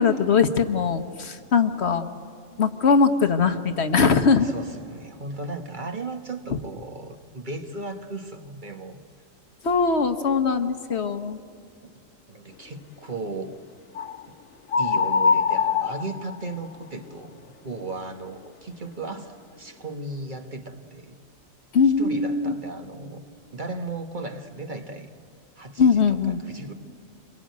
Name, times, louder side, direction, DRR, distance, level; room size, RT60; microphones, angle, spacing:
voice 1, 0.0-2.1 2.6-4.5 9.6-11.4 21.7-22.5 25.8-26.4, left 5 dB, 55° left, 9 dB, 1.2 m, -21 dB
voice 2, 4.4-9.0 11.8-11.9 12.3-13.6 14.3-14.4 14.8-21.2 21.8-23.2 23.5-25.1 25.6-26.7, right 3 dB, 40° right, 6 dB, 1.4 m, -36 dB
sound 1, 13.9-14.2 14.7-16.8, left 5 dB, 85° left, 1.6 m, -23 dB
27.0 x 22.0 x 9.4 m, 2.4 s
omnidirectional pair, 1.4 m